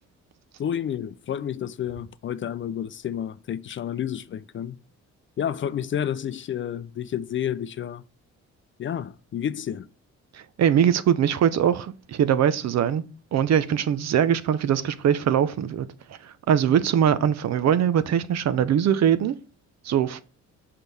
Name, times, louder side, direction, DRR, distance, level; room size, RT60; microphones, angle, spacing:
voice 1, 0.6-4.8 5.4-8.0 8.8-9.9, left 9 dB, 40° left, 0.4 m, -30 dB
voice 2, 10.3-13.0 13.3-19.4 19.8-20.2, right 9 dB, 60° right, 0.7 m, -22 dB
6.2 x 5.7 x 3.4 m
cardioid pair, 90°, 30 cm